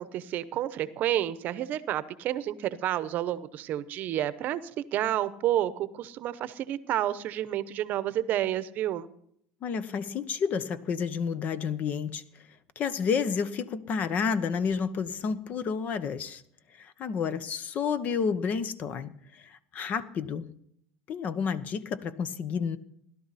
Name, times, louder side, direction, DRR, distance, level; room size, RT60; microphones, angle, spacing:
voice 1, 0.0-9.1, right 12 dB, 50° right, 15 dB, 0.8 m, -30 dB
voice 2, 9.6-12.2 12.8-16.4 16.8-20.5 21.1-22.8, left 6 dB, 45° left, 14 dB, 1.0 m, -30 dB
17.0 x 12.0 x 4.2 m, 0.68 s
supercardioid pair, 115°, 4 cm